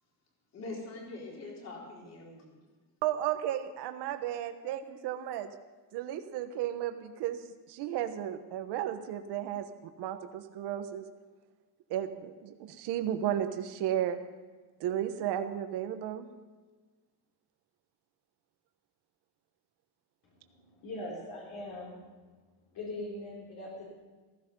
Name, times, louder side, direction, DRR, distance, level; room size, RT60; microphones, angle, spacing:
voice 1, 0.5-2.7, left 2 dB, 40° left, -2 dB, 4.2 m, -43 dB
voice 2, 3.0-5.5 5.9-7.4 7.7-11.0 11.9-14.2 14.8-16.3, right 11 dB, 70° right, 7 dB, 1.3 m, -34 dB
voice 3, 20.2-22.0 22.7-23.8, left 1 dB, 55° left, -3 dB, 3.7 m, -41 dB
15.5 x 15.5 x 5.4 m, 1.3 s
cardioid pair, 175°, 41 cm